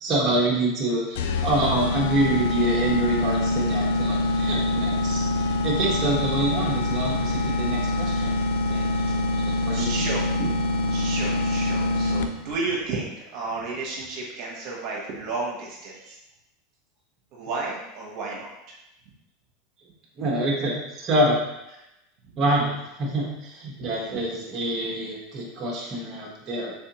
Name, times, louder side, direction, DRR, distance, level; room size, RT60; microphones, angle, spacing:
voice 1, 0.0-8.4 8.7-10.1 20.2-21.4 21.7-21.8 22.4-26.7, right 1 dB, 30° right, -3 dB, 1.0 m, -26 dB
sound 1, 1.2-12.6, left 2 dB, 80° left, 0.3 m, -25 dB
voice 2, 9.7-10.5 10.8-16.2 17.3-18.5 24.1-24.2, right 3 dB, 55° right, -3 dB, 1.0 m, -32 dB
3.7 x 3.4 x 2.9 m, 0.89 s
supercardioid pair, 120°, 0 cm